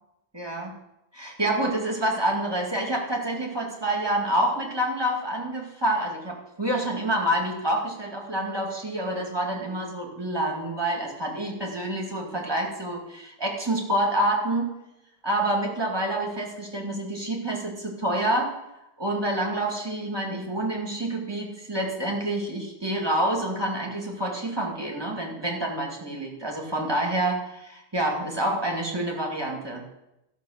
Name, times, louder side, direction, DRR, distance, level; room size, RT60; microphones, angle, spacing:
voice 1, 0.3-0.7 1.1-14.7 15.2-18.6 19.0-29.9, right 1 dB, 25° right, -1 dB, 2.3 m, -27 dB
14.0 x 6.7 x 6.5 m, 0.89 s
omnidirectional pair, 1.1 m